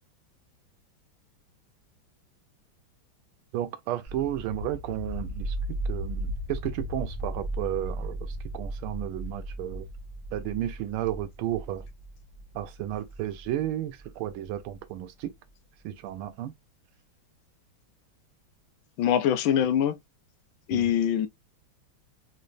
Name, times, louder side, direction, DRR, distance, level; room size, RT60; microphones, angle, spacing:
voice 1, 3.5-5.5 5.8-9.9 10.3-11.8 12.5-15.3 15.8-16.5 20.7-20.9, right 12 dB, 90° right, 1.5 m, -33 dB
sound 1, 4.1-14.7, right 1 dB, 10° left, 1.4 m, -36 dB
voice 2, 19.0-20.0 20.7-21.3, left 9 dB, 75° left, 1.3 m, -23 dB
3.8 x 3.2 x 2.5 m
omnidirectional pair, 2.3 m